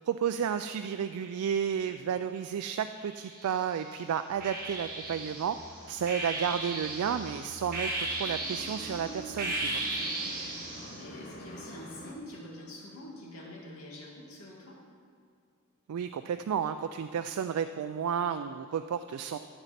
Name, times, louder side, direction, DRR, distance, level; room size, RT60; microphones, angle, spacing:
voice 1, 0.1-5.6 5.9-9.8 15.9-19.4, right 8 dB, 85° right, 9 dB, 0.3 m, -32 dB
sound 1, 3.0-3.8 4.4-11.0, right 2 dB, 40° right, 1.6 m, -36 dB
sound 2, 4.3-12.2, equal, 40° left, 1.0 m, -47 dB
voice 2, 9.6-14.8, left 1 dB, 80° left, -3 dB, 2.1 m, -46 dB
12.0 x 7.1 x 4.2 m, 2.2 s
head